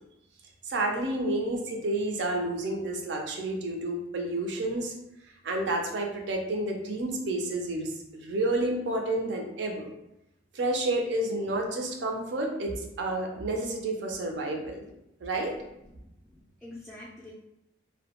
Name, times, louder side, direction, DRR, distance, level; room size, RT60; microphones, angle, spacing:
voice 1, 0.6-4.9 5.4-9.9 10.5-14.9 15.2-15.6, right 2 dB, 65° right, 2 dB, 0.4 m, -30 dB
voice 2, 15.5-17.3, left 1 dB, ahead, -9 dB, 0.3 m, -48 dB
2.2 x 2.1 x 2.8 m, 0.88 s
head